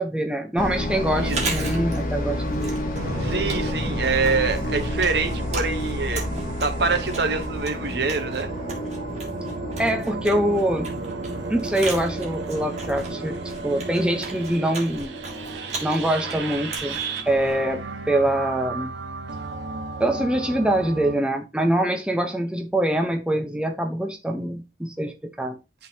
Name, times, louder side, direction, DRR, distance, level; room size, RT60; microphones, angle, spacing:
voice 1, 0.0-2.8 9.8-10.9 11.5-13.3 13.6-15.1 15.8-17.0 17.3-18.9 20.0-25.5, right 1 dB, 5° right, 0.8 m, -24 dB
sound 1, 0.6-17.2, left 1 dB, 50° left, 1.0 m, -31 dB
Chewing mastication, 1.1-18.0, right 3 dB, 40° right, 1.8 m, -37 dB
sound 2, 2.9-21.1, right 3 dB, 90° right, 0.9 m, -34 dB
voice 2, 3.2-6.2 6.6-8.5, right 4 dB, 65° right, 1.0 m, -25 dB
11.0 x 3.8 x 2.8 m
head